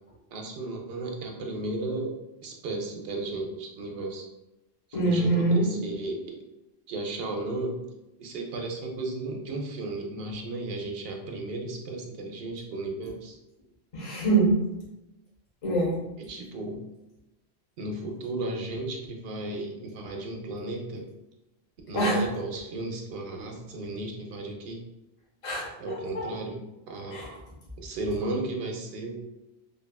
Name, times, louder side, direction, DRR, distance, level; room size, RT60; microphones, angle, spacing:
voice 1, 0.3-4.2 4.9-6.4 6.9-7.8 8.2-13.4 16.3-16.8 17.8-21.0 21.9-24.8 25.8-26.6 26.9-27.2 27.8-29.2, right 2 dB, 65° right, 2 dB, 0.7 m, -34 dB
voice 2, 4.9-5.7 13.9-14.5 15.6-16.0 21.9-22.2 25.4-26.3 27.1-27.3, right 2 dB, 35° left, -5 dB, 0.8 m, -25 dB
2.7 x 2.3 x 2.3 m, 0.95 s
omnidirectional pair, 1.1 m